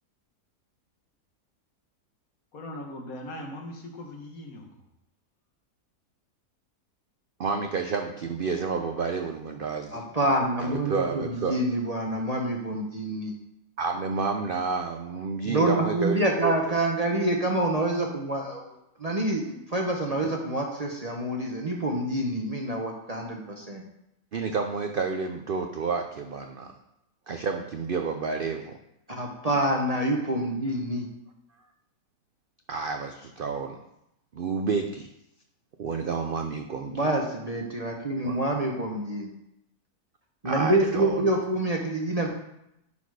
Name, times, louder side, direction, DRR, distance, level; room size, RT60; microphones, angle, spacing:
voice 1, 2.5-4.7, left 1 dB, 60° left, 2 dB, 1.6 m, -39 dB
voice 2, 7.4-10.1 10.6-11.6 13.8-16.8 24.3-26.7 27.3-28.8 32.7-33.8 34.3-35.1 35.8-37.1 38.2-38.4 40.4-41.2, right 5 dB, 70° right, 4 dB, 0.5 m, -30 dB
voice 3, 9.9-13.3 15.4-18.7 19.0-23.8 29.1-31.1 36.9-39.3 40.4-42.3, right 1 dB, 30° right, 0 dB, 0.9 m, -27 dB
11.0 x 4.2 x 4.8 m, 0.82 s
omnidirectional pair, 1.7 m